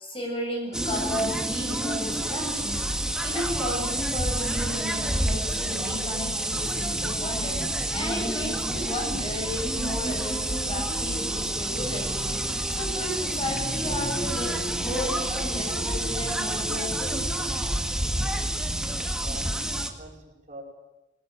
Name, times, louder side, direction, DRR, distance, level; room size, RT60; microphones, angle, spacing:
voice 1, 0.0-2.8 3.2-17.2, left 1 dB, 30° left, 1 dB, 7.4 m, -34 dB
sound 1, 0.7-19.9, right 1 dB, 5° right, 1.8 m, -28 dB
voice 2, 18.7-20.6, right 1 dB, 45° right, 0 dB, 5.1 m, -45 dB
21.0 x 17.5 x 9.1 m, 1.0 s
head